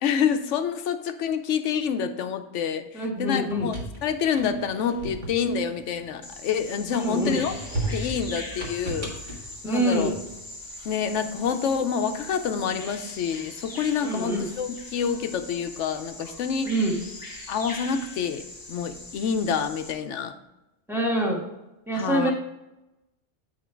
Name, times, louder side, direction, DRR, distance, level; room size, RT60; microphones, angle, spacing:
voice 1, 0.0-2.8 3.2-3.7 4.0-7.5 7.9-9.1 9.6-10.1 10.9-16.7 17.5-18.4 18.7-20.3 22.0-22.3, left 7 dB, 85° left, 8 dB, 0.9 m, -27 dB
voice 2, 2.9-3.7 6.9-7.4 9.6-10.2 14.0-14.5 16.6-17.0 20.9-21.4 21.9-22.3, right 1 dB, ahead, -2 dB, 1.4 m, -25 dB
sound 1, 3.3-6.6 7.1-10.5, right 2 dB, 45° right, 1.6 m, -36 dB
Bird vocalization bird call bird song, 6.2-19.9, left 2 dB, 20° left, 1.0 m, -41 dB
8.3 x 4.6 x 4.4 m, 0.96 s
omnidirectional pair, 1.2 m